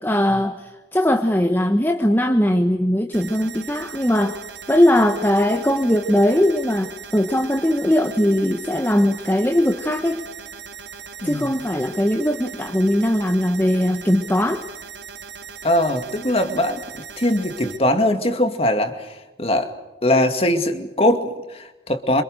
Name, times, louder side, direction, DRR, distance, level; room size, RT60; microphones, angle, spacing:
voice 1, 0.0-4.4 4.7-10.2 11.2-14.6, left 1 dB, 10° left, 5 dB, 1.4 m, -20 dB
sound 1, 3.1-17.8, right 7 dB, 75° right, 3.4 m, -39 dB
voice 2, 15.6-16.8 17.2-19.7 20.0-22.2, left 1 dB, 30° left, 7 dB, 2.3 m, -21 dB
27.0 x 26.5 x 6.6 m, 1.1 s
head